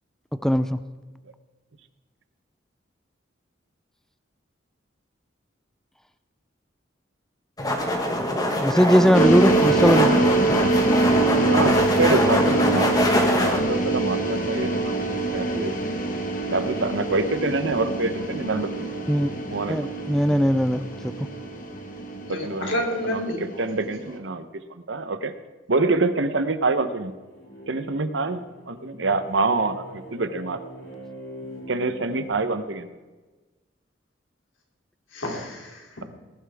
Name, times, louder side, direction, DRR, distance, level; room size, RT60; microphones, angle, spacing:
voice 1, 0.4-0.8 8.6-10.2 19.1-19.3 19.7-21.1, equal, ahead, 11 dB, 0.4 m, -19 dB
sound 1, 7.6-13.6, left 1 dB, 20° left, 1.4 m, -24 dB
voice 2, 8.1-8.9 11.5-12.9 13.3-15.0 15.3-15.7 16.5-19.1 19.5-19.8 22.3-22.8 23.0-23.2 23.6-24.4 24.9-25.3 25.7-27.1 27.7-28.4 28.7-30.6 31.7-32.9, right 3 dB, 75° right, 10 dB, 0.9 m, -26 dB
sound 2, 9.1-24.1, right 2 dB, 45° left, 1.5 m, -24 dB
voice 3, 22.3-23.7 24.1-24.2 35.1-36.0, equal, 90° left, 0 dB, 3.0 m, -30 dB
sound 3, 27.0-32.3, equal, 70° left, 5.1 m, -42 dB
19.5 x 11.0 x 3.5 m, 1.3 s
head